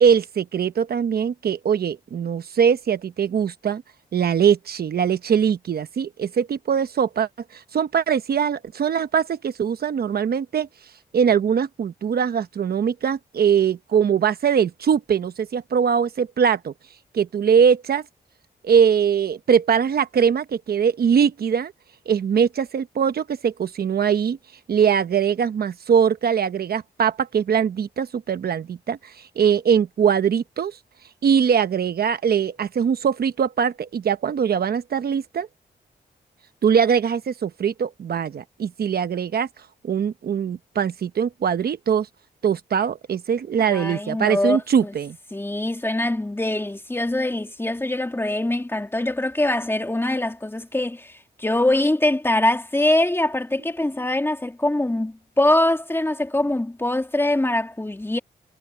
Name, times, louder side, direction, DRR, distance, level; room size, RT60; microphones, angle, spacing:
voice 1, 0.0-3.8 4.1-10.7 11.1-16.7 17.1-18.0 18.6-21.7 22.1-24.4 24.7-30.8 31.2-35.5 36.6-39.5 39.8-42.1 42.4-45.2, right 7 dB, 65° right, 1.0 m, -21 dB
voice 2, 43.6-44.9 45.3-58.2, left 1 dB, 15° left, 2.6 m, -23 dB
cardioid pair, 80°, 17 cm